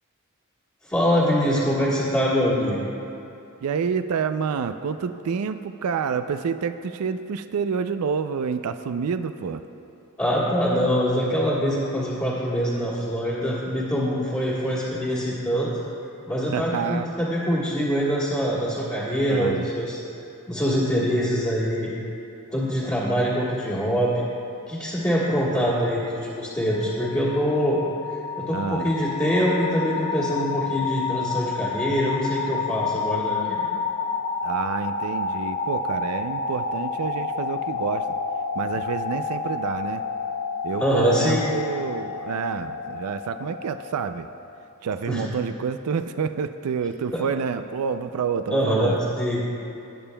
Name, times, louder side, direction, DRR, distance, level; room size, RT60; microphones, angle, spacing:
voice 1, 0.9-2.9 10.2-15.7 16.3-20.0 20.5-21.9 22.5-24.2 24.7-27.8 28.1-33.7 40.8-41.5 45.1-45.3 47.1-47.2 48.5-49.4, equal, 15° left, -9 dB, 1.6 m, -24 dB
voice 2, 3.6-9.6 16.5-17.1 19.3-19.6 28.5-28.9 34.4-38.2 38.6-40.0 40.6-44.3 44.8-49.0, right 6 dB, 85° right, 10 dB, 0.4 m, -28 dB
sound 1, 26.6-44.5, left 5 dB, 85° left, 1.1 m, -30 dB
19.0 x 8.7 x 2.2 m, 2.8 s
head